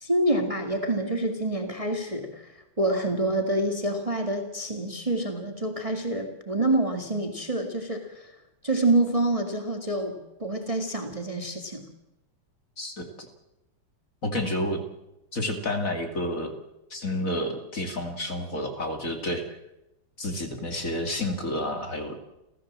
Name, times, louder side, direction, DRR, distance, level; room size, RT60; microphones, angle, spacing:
voice 1, 0.0-2.5 2.8-8.3 8.6-11.8, right 1 dB, 15° right, 4 dB, 2.1 m, -27 dB
voice 2, 12.8-13.3 14.2-14.8 15.3-16.6 16.9-19.4 20.2-22.2, left 1 dB, 40° left, 5 dB, 2.7 m, -30 dB
30.0 x 15.0 x 7.5 m, 0.92 s
omnidirectional pair, 2.4 m